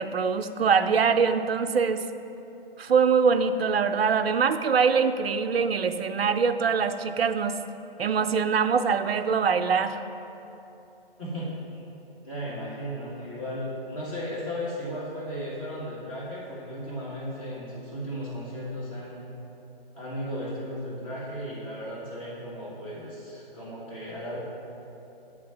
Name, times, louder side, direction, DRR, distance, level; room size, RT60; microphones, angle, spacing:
voice 1, 0.0-2.1 2.8-7.6 8.0-10.0, right 6 dB, 80° right, 9 dB, 0.5 m, -23 dB
voice 2, 11.2-11.8 12.2-19.2 19.9-24.4, equal, 35° left, -7 dB, 1.5 m, -35 dB
9.4 x 3.7 x 5.5 m, 2.9 s
figure-of-eight pair, 145°, 30 cm